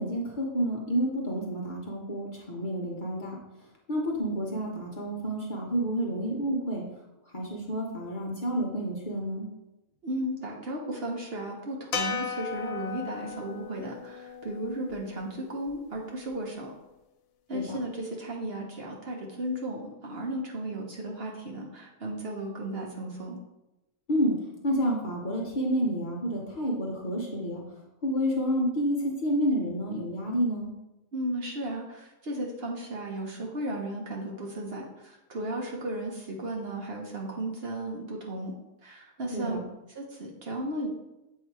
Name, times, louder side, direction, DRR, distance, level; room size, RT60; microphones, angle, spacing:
voice 1, 0.0-3.4 3.9-6.8 7.3-9.5 17.5-17.8 24.1-24.3 24.6-27.6 28.0-30.7 39.3-39.6, equal, 40° left, -2 dB, 0.9 m, -29 dB
voice 2, 10.0-16.7 17.5-23.4 31.1-38.5 38.8-39.6 39.9-40.9, right 1 dB, 50° right, -1 dB, 1.0 m, -35 dB
sound 1, 11.9-16.3, left 6 dB, 90° left, 1.0 m, -37 dB
7.5 x 2.8 x 4.6 m, 0.96 s
omnidirectional pair, 1.4 m